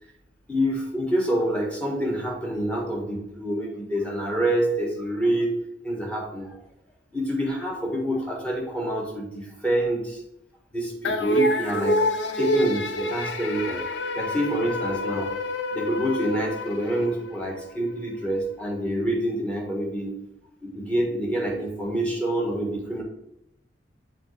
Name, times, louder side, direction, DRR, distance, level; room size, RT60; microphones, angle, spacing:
voice 1, 0.5-5.5 5.8-6.5 7.1-10.2 10.7-12.0 12.4-13.8 14.1-15.3 15.7-20.1 20.6-23.0, right 1 dB, 10° left, -2 dB, 1.5 m, -27 dB
sound 1, 11.0-17.6, left 1 dB, 90° left, 0.5 m, -27 dB
7.6 x 3.8 x 3.3 m, 0.83 s
head